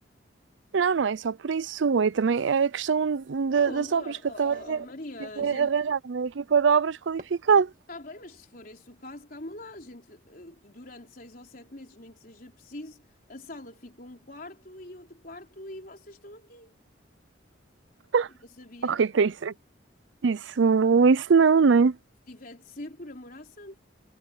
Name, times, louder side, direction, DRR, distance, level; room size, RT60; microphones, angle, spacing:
voice 1, 0.7-4.8 5.4-7.7 18.1-18.3 18.8-19.5 20.2-22.0, right 5 dB, 75° right, 0.5 m, -23 dB
sound 1, 3.5-5.1 5.4-5.9 7.2-7.3, right 2 dB, 45° right, 1.6 m, -47 dB
voice 2, 3.7-5.8 7.9-16.8 18.6-19.2 22.3-23.8, left 1 dB, 50° left, 4.2 m, -44 dB
head